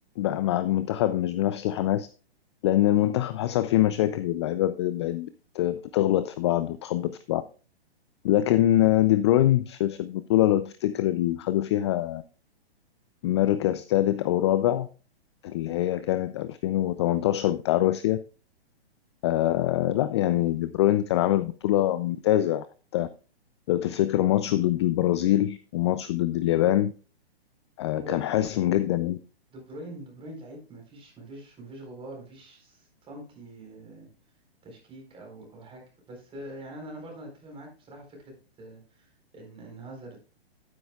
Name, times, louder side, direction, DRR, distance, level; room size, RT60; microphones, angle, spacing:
voice 1, 0.2-2.1 2.6-5.3 5.5-7.4 8.2-12.2 13.2-14.9 15.4-18.2 19.2-22.7 22.9-23.1 23.7-26.9 27.8-29.2, left 13 dB, 30° left, 14 dB, 0.4 m, -24 dB
voice 2, 29.5-34.1 34.6-40.2, right 1 dB, 15° right, 1 dB, 4.3 m, -44 dB
11.5 x 9.8 x 2.3 m, 0.34 s
hypercardioid pair, 120°, 31 cm